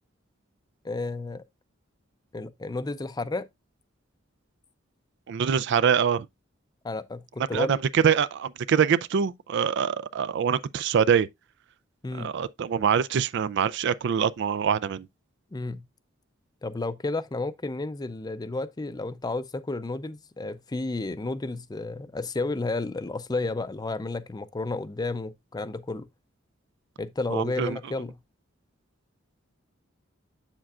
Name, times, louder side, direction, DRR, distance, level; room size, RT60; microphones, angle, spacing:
voice 1, 0.8-1.4 2.3-3.5 6.8-7.8 12.0-12.3 15.5-15.8 16.6-26.1 27.0-28.2, left 2 dB, 20° left, 0.5 m, -32 dB
voice 2, 5.3-6.3 7.5-11.3 12.2-15.1 27.3-27.8, right 7 dB, 60° right, 0.4 m, -24 dB
7.5 x 7.3 x 2.4 m
head